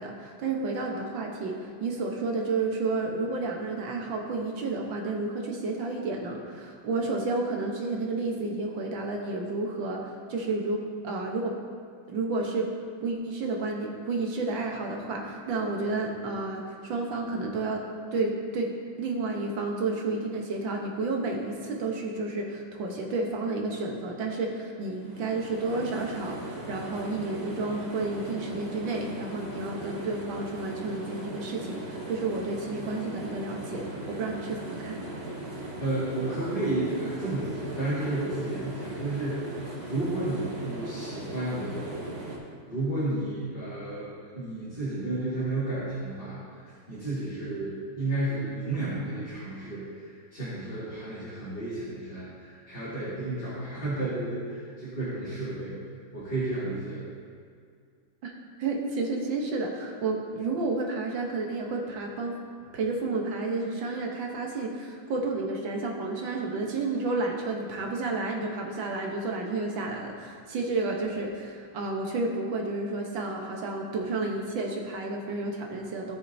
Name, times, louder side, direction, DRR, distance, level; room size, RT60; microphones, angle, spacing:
voice 1, 0.0-11.5 12.1-12.7 13.0-17.9 18.1-18.7 19.0-35.1 58.2-58.3 58.6-62.4 62.7-76.2, right 3 dB, 75° right, 0 dB, 1.8 m, -31 dB
sound 1, 25.0-42.4, right 1 dB, 50° right, 2.3 m, -39 dB
voice 2, 35.8-39.4 39.9-42.2 42.7-55.8 56.1-57.1, right 2 dB, 25° left, -11 dB, 2.4 m, -32 dB
17.0 x 6.5 x 2.7 m, 2.2 s
omnidirectional pair, 2.1 m